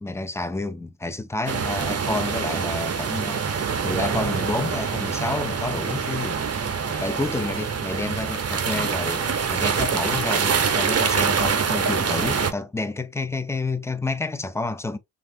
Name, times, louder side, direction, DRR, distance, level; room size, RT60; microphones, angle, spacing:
voice 1, 0.0-15.0, left 2 dB, 5° left, 0.5 m, -29 dB
sound 1, 1.5-12.5, right 6 dB, 35° right, 0.7 m, -25 dB
3.2 x 2.6 x 2.7 m
supercardioid pair, 55°, 44 cm